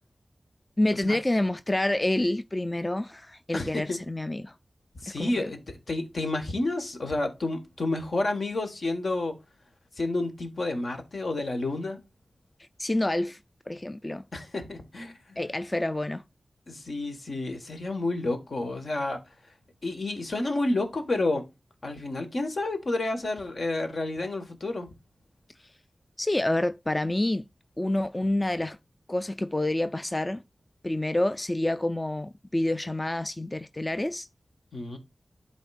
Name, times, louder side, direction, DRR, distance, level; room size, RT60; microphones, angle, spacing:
voice 1, 0.8-4.6 5.2-5.5 12.8-13.4 13.7-14.2 15.4-16.2 25.6-25.7 26.2-27.4 27.8-28.8 29.1-30.4 30.8-34.3, left 1 dB, 25° left, 0.3 m, -28 dB
voice 2, 3.5-4.0 5.0-9.3 10.0-12.0 14.3-15.4 16.7-19.2 19.8-21.4 21.8-24.9 34.7-35.0, left 2 dB, 70° left, 1.6 m, -30 dB
11.5 x 4.2 x 2.5 m
wide cardioid pair, 85°, 0 cm